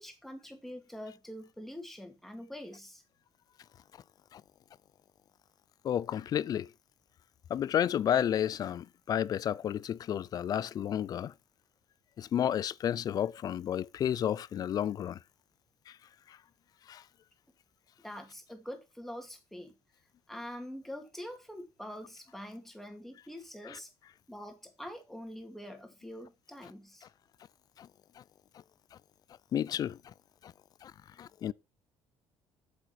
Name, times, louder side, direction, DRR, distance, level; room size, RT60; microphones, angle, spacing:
voice 1, 0.0-3.0 18.0-19.8 20.3-23.9 24.3-27.1, equal, 5° left, 2.2 m, -45 dB
voice 2, 5.8-6.7 7.5-11.3 12.2-15.2 15.9-16.0 16.3-16.4 16.9-17.0 27.8-27.9 28.2-28.3 29.5-30.0 30.4-30.5 30.8-30.9 31.2-31.5, left 10 dB, 40° left, 0.4 m, -31 dB
8.0 x 7.3 x 4.3 m
cardioid pair, 140°, 10 cm